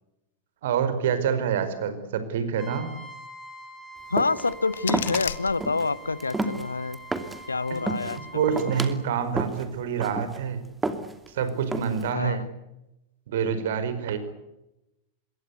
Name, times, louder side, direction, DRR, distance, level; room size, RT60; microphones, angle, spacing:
voice 1, 0.6-2.9 8.3-10.6 11.3-12.4 13.3-14.2, right 7 dB, 55° right, 11 dB, 4.9 m, -26 dB
Trumpet, 2.6-9.0, right 1 dB, 15° left, 5.5 m, -44 dB
voice 2, 4.1-7.0 7.5-8.5 12.1-12.5, left 3 dB, 80° left, 19 dB, 0.9 m, -27 dB
sound 1, 4.2-4.5 4.9-5.2 5.6-5.9 6.2-7.4 7.8-8.2 8.6-9.0 9.4-9.7 10.0-10.4 10.8-11.3 11.7-12.1, right 2 dB, 10° right, 2.8 m, -30 dB
sound 2, 4.3-6.3, left 9 dB, 65° left, 1.4 m, -36 dB
26.5 x 22.5 x 8.2 m, 0.93 s
figure-of-eight pair, 90°, 0 cm